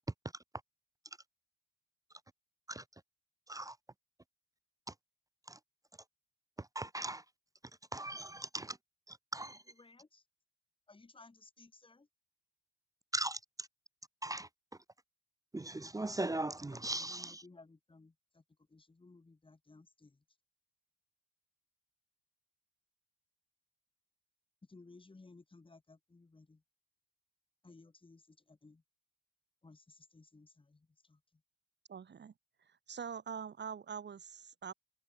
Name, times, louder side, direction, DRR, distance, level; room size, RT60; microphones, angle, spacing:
voice 1, 6.6-7.2 7.9-8.8 9.1-9.6 13.1-13.7 14.2-14.5 15.5-17.4, right 2 dB, 10° right, 0.6 m, -39 dB
voice 2, 9.8-10.2 10.9-12.1 16.7-18.4 18.7-20.2 24.7-26.6 27.6-28.8 29.6-31.4, left 3 dB, 15° left, 3.5 m, -59 dB
voice 3, 31.9-32.3 32.9-34.7, right 7 dB, 30° right, 1.7 m, -44 dB
cardioid pair, 130°, 33 cm